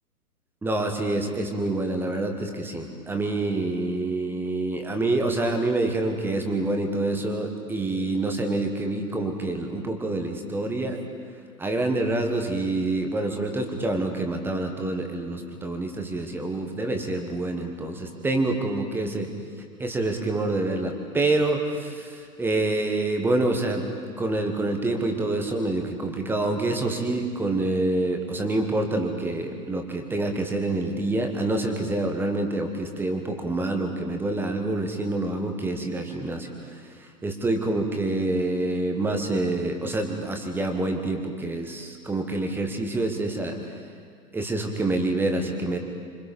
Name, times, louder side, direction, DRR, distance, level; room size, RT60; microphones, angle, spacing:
voice 1, 0.6-11.0 11.6-19.3 19.8-36.5 37.0-43.6 44.3-45.8, right 2 dB, 5° right, 4 dB, 1.5 m, -27 dB
27.5 x 26.0 x 5.4 m, 2.1 s
figure-of-eight pair, 120°, 48 cm